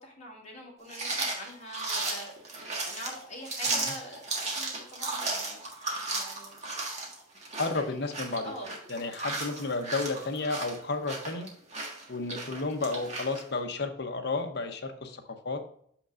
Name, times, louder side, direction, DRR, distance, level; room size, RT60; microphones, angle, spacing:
voice 1, 0.0-5.6 6.1-6.6 7.7-8.0 8.4-8.7, equal, 35° left, -3 dB, 2.3 m, -44 dB
sound 1, 0.9-13.4, right 3 dB, 35° right, 1.6 m, -35 dB
voice 2, 7.6-8.5 8.9-11.5 12.1-15.6, left 3 dB, 60° left, 6 dB, 0.8 m, -32 dB
6.7 x 5.9 x 2.5 m, 0.65 s
head